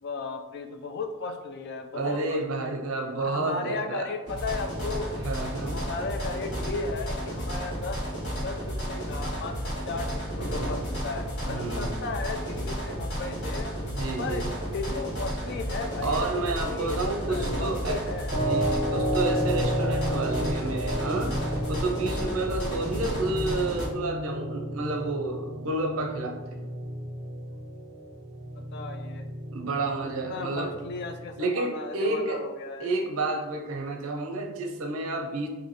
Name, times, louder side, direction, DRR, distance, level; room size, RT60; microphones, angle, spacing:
voice 1, 0.0-2.7 3.2-5.2 5.7-8.0 8.4-13.7 14.2-14.5 14.7-18.3 28.6-29.3 30.2-32.9, left 3 dB, 50° left, 6 dB, 0.4 m, -35 dB
voice 2, 1.9-4.1 5.1-5.8 11.4-12.0 13.8-14.5 16.0-18.0 18.3-26.6 29.5-30.8 31.4-32.4 32.8-35.5, right 2 dB, 65° right, 2 dB, 0.6 m, -30 dB
sound 1, 4.3-23.9, equal, 70° left, 1.3 m, -32 dB
sound 2, 18.3-31.3, equal, 45° right, 1.0 m, -32 dB
3.2 x 2.6 x 4.0 m, 1.2 s
head